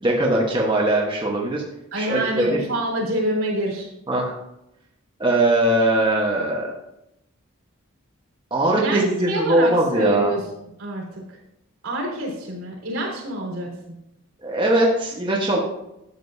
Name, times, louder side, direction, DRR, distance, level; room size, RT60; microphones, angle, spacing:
voice 1, 0.0-1.6 2.0-2.6 4.1-4.3 5.2-6.7 8.5-10.3 14.4-15.6, right 1 dB, 20° right, -3 dB, 1.2 m, -20 dB
voice 2, 1.9-3.9 8.8-10.4 10.8-11.4 11.8-14.0, right 1 dB, 75° right, -2 dB, 3.8 m, -27 dB
12.5 x 7.7 x 2.7 m, 0.85 s
head